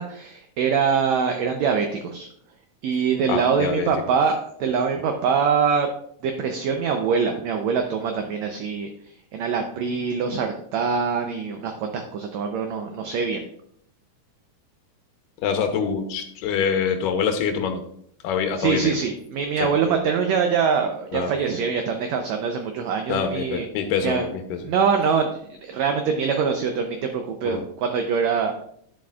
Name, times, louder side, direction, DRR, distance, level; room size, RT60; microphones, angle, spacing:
voice 1, 0.0-2.3 2.8-5.9 6.2-8.9 9.3-13.4 18.6-23.7 24.0-24.3 24.6-28.6, right 6 dB, 75° right, 4 dB, 1.7 m, -24 dB
voice 2, 3.3-3.9 15.4-17.8 18.2-18.9 19.6-19.7 21.1-21.3 23.1-24.7 27.4-27.6, left 6 dB, 90° left, 6 dB, 2.5 m, -25 dB
10.0 x 7.5 x 2.4 m, 0.67 s
omnidirectional pair, 3.7 m